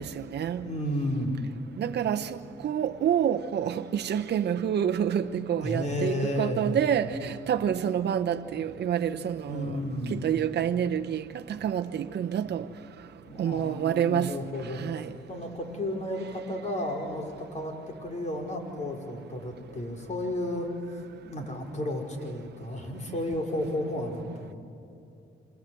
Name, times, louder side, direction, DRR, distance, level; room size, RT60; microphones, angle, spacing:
voice 1, 0.0-0.6 1.8-2.3 2.6-9.7 10.1-11.2 11.6-12.6 13.4-14.3 14.8-15.0, right 9 dB, 55° right, 1.0 m, -27 dB
voice 2, 0.6-1.4 5.6-6.8 9.5-10.2 13.3-14.8 15.3-24.5, left 1 dB, 35° left, 5.3 m, -32 dB
28.0 x 25.5 x 7.9 m
cardioid pair, 90°, 20 cm